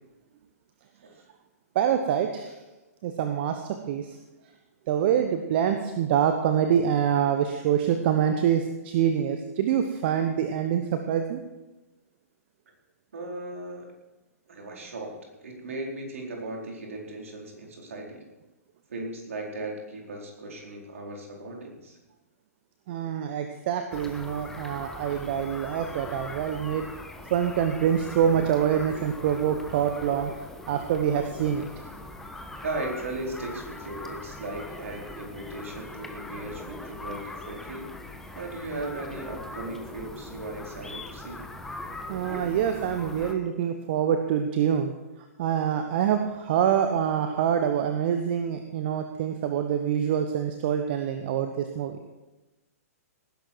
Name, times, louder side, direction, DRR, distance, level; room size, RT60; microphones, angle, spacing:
voice 1, 1.7-2.6 3.0-4.2 4.9-11.4 22.9-26.9 27.3-30.3 30.7-31.7 42.1-52.0, right 9 dB, 40° right, 7 dB, 1.1 m, -25 dB
voice 2, 13.1-13.9 14.5-15.1 15.4-18.2 18.9-22.0 32.6-38.0 38.3-41.4, right 2 dB, 60° right, 0 dB, 4.2 m, -37 dB
sound 1, 23.9-43.3, left 2 dB, 5° left, 1.1 m, -41 dB
18.5 x 11.0 x 4.6 m, 1.1 s
figure-of-eight pair, 115°, 8 cm